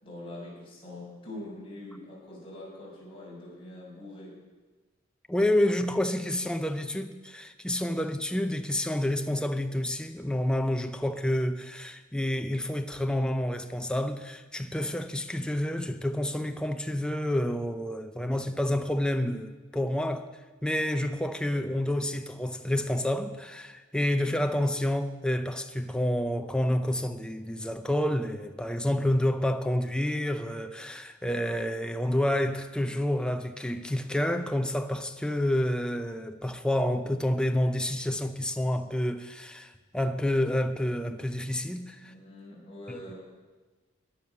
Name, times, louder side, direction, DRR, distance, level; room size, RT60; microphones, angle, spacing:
voice 1, 0.0-4.3 42.0-43.1, left 1 dB, 25° left, 5.3 m, -43 dB
voice 2, 5.3-20.3 20.6-42.1, left 1 dB, 5° left, 0.6 m, -29 dB
14.0 x 9.9 x 6.4 m
head